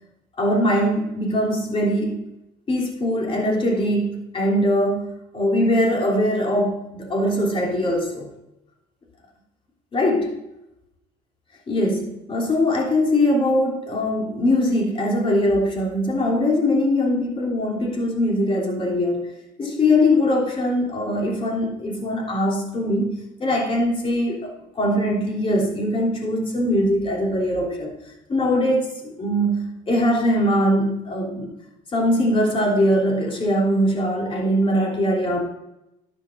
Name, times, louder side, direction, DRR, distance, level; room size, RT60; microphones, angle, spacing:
voice 1, 0.4-2.2 2.7-8.3 9.9-10.4 11.7-27.9 28.3-31.5 31.9-35.4, left 1 dB, 35° left, -1 dB, 3.3 m, -21 dB
13.0 x 9.9 x 2.6 m, 0.88 s
cardioid pair, 110°, 17 cm